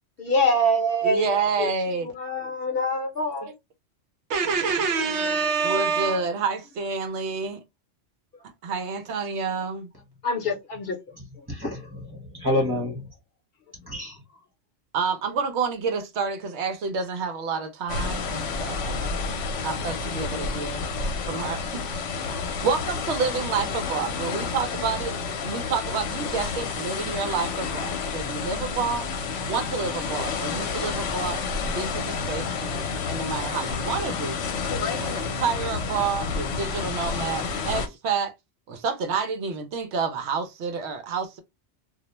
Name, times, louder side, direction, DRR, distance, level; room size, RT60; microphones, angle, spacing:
voice 1, 0.2-1.7 2.0-3.5 10.2-11.0 11.4-11.5, equal, 60° left, 0.8 m, -25 dB
voice 2, 1.0-2.1 3.4-3.5 4.3-7.6 8.6-9.9 14.9-19.3 19.6-20.8 21.3-21.8 22.6-25.2 25.4-29.1 29.5-31.4 31.7-34.4 34.8-38.3 38.7-41.4, right 5 dB, 70° right, 0.8 m, -28 dB
voice 3, 11.5-13.1 13.7-14.2, left 1 dB, 20° right, 1.0 m, -28 dB
sound 1, 17.9-37.9, left 5 dB, 80° left, 0.9 m, -30 dB
2.3 x 2.1 x 2.9 m
omnidirectional pair, 1.2 m